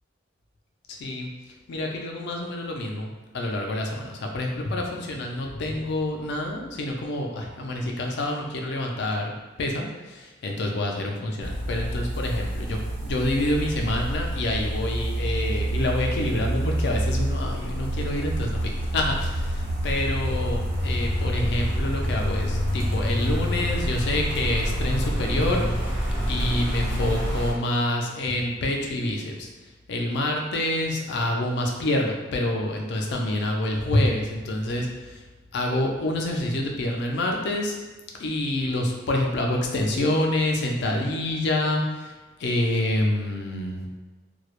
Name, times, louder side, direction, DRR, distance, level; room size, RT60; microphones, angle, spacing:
voice 1, 0.9-1.3 1.7-25.6 26.3-29.5 29.9-35.2 35.5-37.8 38.2-42.1 42.4-43.8, left 1 dB, 60° left, 1 dB, 0.4 m, -27 dB
sound 1, 11.4-27.5, equal, 80° right, 0.7 m, -27 dB
2.2 x 2.0 x 2.9 m, 1.2 s
head